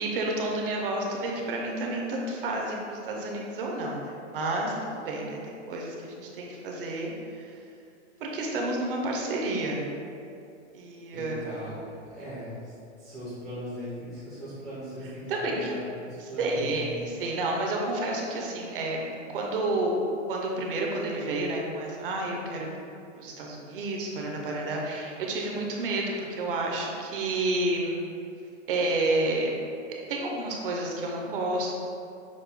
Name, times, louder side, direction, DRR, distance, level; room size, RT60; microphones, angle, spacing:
voice 1, 0.0-7.6 8.2-9.9 10.7-11.6 15.3-15.7 16.2-19.1 19.3-19.9 20.3-28.1 28.7-29.5 29.9-31.8, right 2 dB, 50° right, -1 dB, 0.7 m, -30 dB
voice 2, 11.1-16.7, equal, ahead, -14 dB, 0.4 m, -39 dB
6.3 x 2.1 x 3.5 m, 2.6 s
hypercardioid pair, 160°, 36 cm